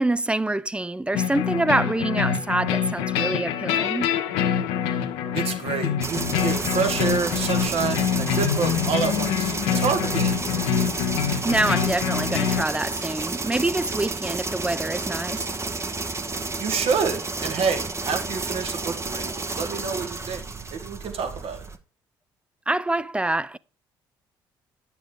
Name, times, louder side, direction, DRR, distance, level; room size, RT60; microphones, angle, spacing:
voice 1, 0.0-4.1 11.4-15.5 22.7-23.6, right 2 dB, 10° right, 0.5 m, -26 dB
sound 1, 1.1-12.6, left 8 dB, 75° left, 0.9 m, -25 dB
voice 2, 5.3-10.4 16.6-20.4 20.7-21.7, right 6 dB, 60° right, 1.6 m, -28 dB
sound 2, 6.0-21.8, right 3 dB, 25° right, 0.9 m, -31 dB
9.1 x 6.9 x 3.8 m
hypercardioid pair, 55°, 11 cm